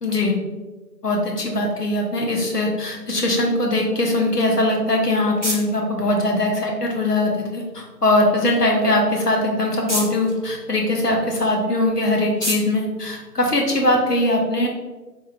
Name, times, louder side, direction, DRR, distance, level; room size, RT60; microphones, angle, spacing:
voice 1, 0.0-0.3 1.0-14.7, left 1 dB, 70° left, 0 dB, 1.0 m, -21 dB
sound 1, 4.6-14.0, equal, 45° right, 0.7 m, -35 dB
3.4 x 2.9 x 3.4 m, 1.2 s
figure-of-eight pair, 175°, 50 cm